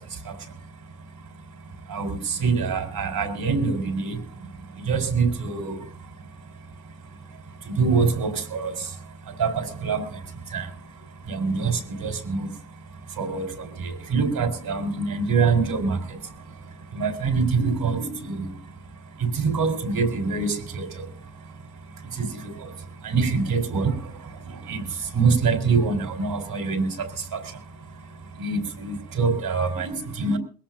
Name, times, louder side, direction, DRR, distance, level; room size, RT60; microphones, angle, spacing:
voice 1, 1.9-4.2 4.9-5.8 7.7-8.7 9.4-10.0 10.5-10.7 11.3-12.5 13.2-16.0 16.9-18.5 19.2-21.0 22.2-22.3 22.6-22.7 23.0-24.0 24.6-24.8 25.1-27.4 28.4-30.4, right 4 dB, 80° right, 5 dB, 4.5 m, -24 dB
22.5 x 17.5 x 2.6 m, 0.38 s
wide cardioid pair, 140°, 36 cm